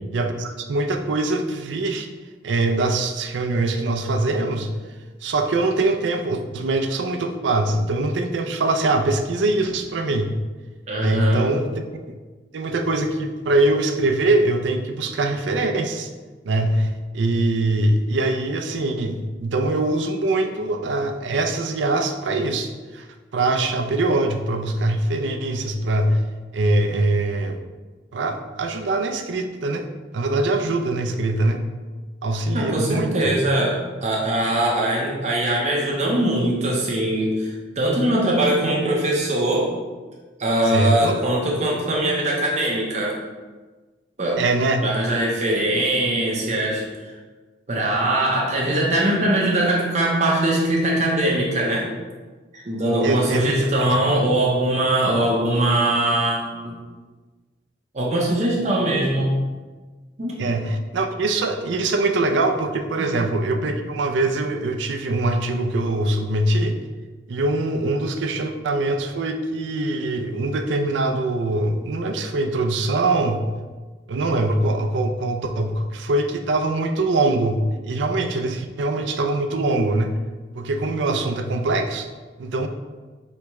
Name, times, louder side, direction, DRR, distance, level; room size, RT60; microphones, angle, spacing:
voice 1, 0.1-2.1 2.4-4.7 5.2-10.4 11.0-11.8 12.5-16.1 16.4-16.9 17.1-23.1 23.3-26.2 26.5-27.6 28.1-29.9 30.1-31.6 32.2-33.1 40.7-41.2 44.4-44.8 53.0-53.5 60.4-66.8 67.3-73.6 74.1-80.1 80.6-82.1 82.4-82.7, right 2 dB, 80° right, 6 dB, 0.4 m, -23 dB
voice 2, 10.9-11.5 32.5-39.7 40.4-43.1 44.2-44.4 44.8-46.8 47.7-51.9 52.5-56.8 57.9-59.3 60.2-60.6 63.0-63.1, right 1 dB, 40° right, -3 dB, 0.7 m, -21 dB
3.3 x 3.0 x 4.6 m, 1.3 s
head